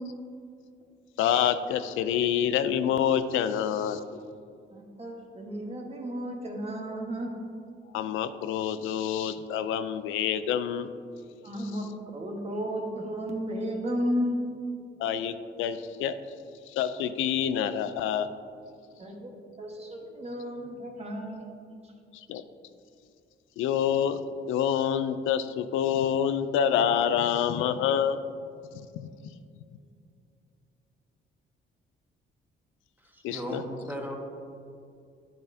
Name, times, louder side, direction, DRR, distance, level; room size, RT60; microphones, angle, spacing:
voice 1, 1.2-4.0 7.9-10.9 15.0-16.1 16.7-18.3 22.3-22.4 23.6-24.2 24.5-28.2 29.0-29.1 33.2-33.6, left 9 dB, 90° left, 11 dB, 0.4 m, -27 dB
voice 2, 4.7-7.3 11.4-14.4 19.0-19.3 19.6-21.4, equal, 30° right, 1 dB, 1.3 m, -33 dB
voice 3, 33.1-34.1, equal, 10° right, 0 dB, 1.3 m, -36 dB
9.8 x 6.9 x 2.7 m, 2.4 s
cardioid pair, 90°, 20 cm